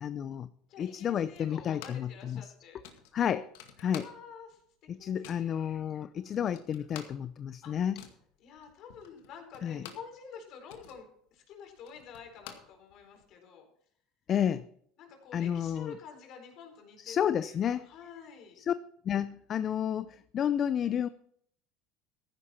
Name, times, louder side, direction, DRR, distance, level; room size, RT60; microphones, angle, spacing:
voice 1, 0.0-0.5 0.8-2.5 3.1-3.5 3.8-4.1 4.9-8.0 9.6-9.8 14.3-14.7 15.3-16.0 17.0-17.9 18.6-18.7 19.0-21.1, left 9 dB, 40° left, 14 dB, 0.5 m, -31 dB
voice 2, 0.7-2.8 3.8-5.6 7.6-7.8 8.4-13.6 15.0-18.6, left 6 dB, 60° left, 4 dB, 4.3 m, -49 dB
sound 1, 1.3-2.2 2.4-2.5 2.8-4.5 4.8-5.5 6.0-6.1 6.3-10.2 10.5-13.3, left 9 dB, 80° left, 2.0 m, -50 dB
14.5 x 11.0 x 4.3 m, 0.66 s
supercardioid pair, 90°, 0 cm